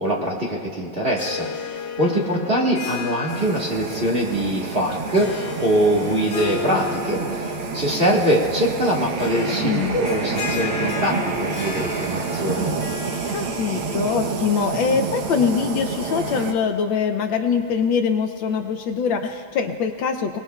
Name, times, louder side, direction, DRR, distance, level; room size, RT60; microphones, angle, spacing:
voice 1, 0.0-1.5 2.0-12.7, equal, 30° right, -3 dB, 1.5 m, -23 dB
Harp, 1.1-14.8, left 5 dB, 40° left, 0.9 m, -35 dB
sound 1, 3.3-16.5, right 5 dB, 80° right, 1.9 m, -28 dB
voice 2, 9.6-10.0 13.3-20.4, left 6 dB, 70° left, 6 dB, 1.3 m, -23 dB
29.0 x 19.0 x 2.3 m, 2.2 s
omnidirectional pair, 2.3 m